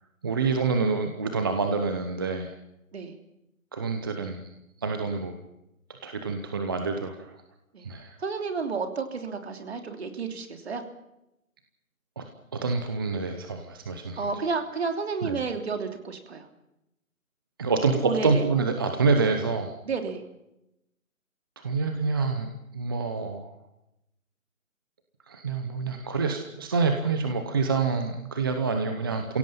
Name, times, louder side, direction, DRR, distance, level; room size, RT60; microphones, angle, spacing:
voice 1, 0.2-2.5 3.7-4.5 4.8-5.4 6.0-7.3 7.8-8.2 12.2-12.3 12.5-14.3 15.2-15.4 17.6-19.7 21.6-23.5 25.3-29.4, right 4 dB, 15° right, 5 dB, 0.8 m, -27 dB
voice 2, 8.2-10.8 14.2-16.5 18.0-18.4 19.8-20.2, right 5 dB, 50° right, 5 dB, 3.2 m, -31 dB
29.0 x 17.0 x 5.7 m, 0.86 s
figure-of-eight pair, 155°, 41 cm